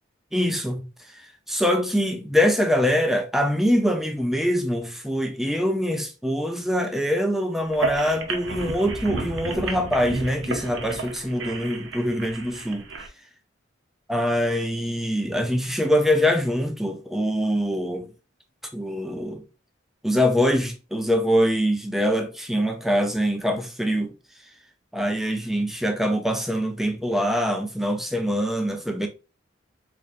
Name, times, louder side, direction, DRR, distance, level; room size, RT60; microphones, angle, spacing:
voice 1, 0.3-0.9 1.1-12.8 14.1-18.1 18.7-19.4 20.0-24.1 24.9-29.1, equal, ahead, 0.5 m, -24 dB
sound 1, 7.6-13.1, right 3 dB, 70° right, 0.7 m, -32 dB
3.8 x 3.3 x 2.4 m
head